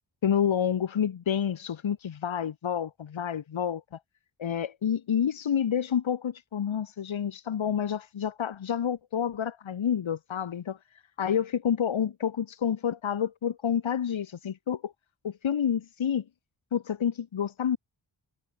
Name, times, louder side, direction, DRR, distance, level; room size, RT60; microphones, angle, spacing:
voice 1, 0.2-3.8 4.4-10.8 11.2-14.9 15.2-16.2 16.7-17.8, left 8 dB, 80° left, 1.2 m, -29 dB
wide cardioid pair, 90°, 46 cm